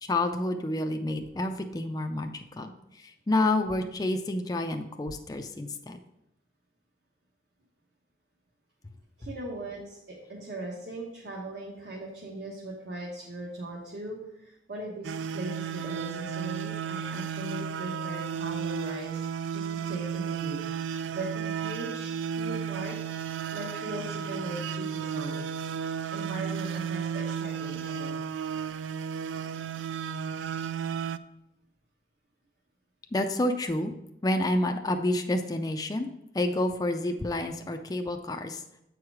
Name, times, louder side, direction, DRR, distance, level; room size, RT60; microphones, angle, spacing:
voice 1, 0.0-2.7 3.0-6.0 33.1-33.9 34.2-36.1 36.3-38.6, left 1 dB, 20° left, 5 dB, 0.4 m, -29 dB
voice 2, 9.2-22.9 23.2-25.4 26.1-28.2, right 2 dB, 60° right, -3 dB, 1.2 m, -39 dB
sound 1, 15.0-31.2, right 7 dB, 85° right, 0.3 m, -33 dB
8.0 x 4.7 x 4.8 m, 0.86 s
head